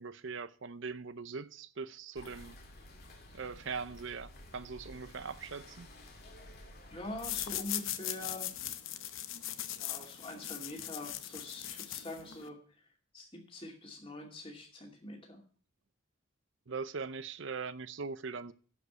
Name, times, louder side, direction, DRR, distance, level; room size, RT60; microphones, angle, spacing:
voice 1, 0.0-2.6 3.3-5.9 16.7-18.5, right 5 dB, 60° right, 0.6 m, -41 dB
sound 1, 2.1-7.6, left 1 dB, 45° left, 2.2 m, -53 dB
voice 2, 6.9-8.5 9.8-12.6 13.1-15.4, left 1 dB, 25° left, 2.5 m, -44 dB
sound 2, 7.2-12.5, left 12 dB, 70° left, 0.8 m, -39 dB
11.5 x 5.2 x 8.1 m
head